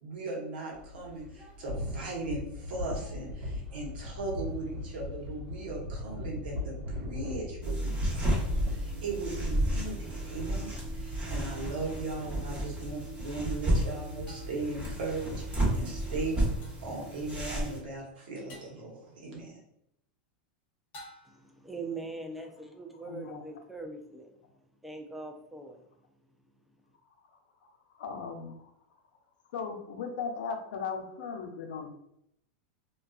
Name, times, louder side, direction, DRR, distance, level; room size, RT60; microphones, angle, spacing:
voice 1, 0.0-8.3 8.7-16.4 16.8-19.6, right 2 dB, 80° right, -1 dB, 1.0 m, -38 dB
sound 1, 0.7-16.5, left 2 dB, 60° right, 1.0 m, -41 dB
sound 2, 7.6-17.8, right 1 dB, 25° right, 1.1 m, -32 dB
sound 3, 12.2-12.3 14.3-14.8 16.6-17.0 18.5-18.9 20.9-21.6, left 1 dB, 40° left, 0.8 m, -51 dB
voice 2, 21.3-24.3 24.8-25.8, right 3 dB, ahead, 2 dB, 0.4 m, -41 dB
voice 3, 23.0-23.4 27.9-28.7 29.5-31.9, left 5 dB, 75° left, 4 dB, 0.6 m, -37 dB
2.3 x 2.3 x 2.4 m, 0.77 s
supercardioid pair, 120°, 5 cm